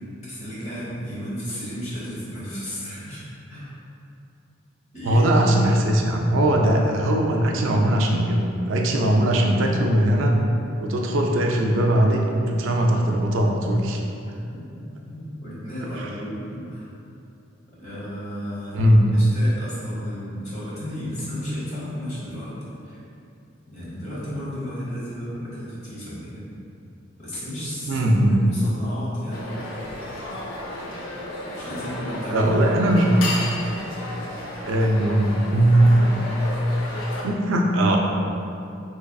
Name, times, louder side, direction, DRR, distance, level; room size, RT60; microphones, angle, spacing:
voice 1, 0.2-3.7 4.9-5.2 14.3-14.6 15.1-16.9 17.7-22.5 22.8-23.0 23.7-26.4 27.2-28.0 28.3-29.4 31.5-32.5, equal, 35° left, -9 dB, 1.1 m, -34 dB
voice 2, 5.0-10.3 10.8-14.0 16.0-16.1 18.7-19.0 27.9-28.4 32.3-33.2 34.6-36.2 37.2-38.0, right 1 dB, 70° right, 1 dB, 0.4 m, -20 dB
sound 1, 29.3-37.2, left 1 dB, 85° left, 0.5 m, -33 dB
3.6 x 3.2 x 2.3 m, 2.6 s
head